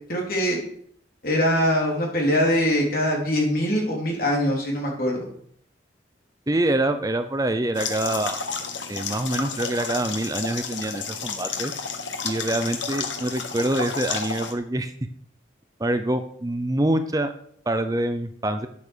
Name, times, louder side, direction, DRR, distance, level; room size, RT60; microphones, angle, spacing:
voice 1, 0.1-0.6 1.2-5.3, equal, 50° left, -1 dB, 3.7 m, -23 dB
voice 2, 6.5-8.4 8.9-11.7 12.2-14.9 15.8-17.3 17.7-18.7, right 1 dB, 20° right, 9 dB, 0.6 m, -25 dB
sound 1, 7.8-14.5, left 5 dB, 85° left, 1.6 m, -31 dB
9.0 x 8.5 x 6.3 m, 0.64 s
head